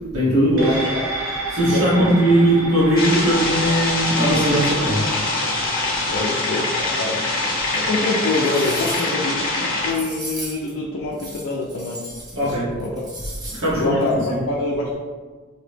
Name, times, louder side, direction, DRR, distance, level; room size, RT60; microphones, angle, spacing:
voice 1, 0.1-0.7 1.5-5.2 12.3-12.7 13.5-14.0 14.3-14.4, right 1 dB, 90° right, -11 dB, 1.1 m, -19 dB
sound 1, 0.6-9.3 9.6-9.7, right 2 dB, 70° right, 0.7 m, -33 dB
voice 2, 0.7-1.1 1.7-2.2 6.1-7.3 7.7-12.0 12.4-13.0 13.8-14.9, left 2 dB, 75° left, -3 dB, 0.4 m, -25 dB
sound 2, 3.0-9.9, left 2 dB, 40° left, 0.8 m, -23 dB
sound 3, 7.7-7.8 8.2-9.2 9.9-10.7 11.1-12.5 12.8-13.7 14.0-14.1, right 1 dB, 20° right, 0.6 m, -36 dB
2.9 x 2.8 x 3.3 m, 1.4 s
head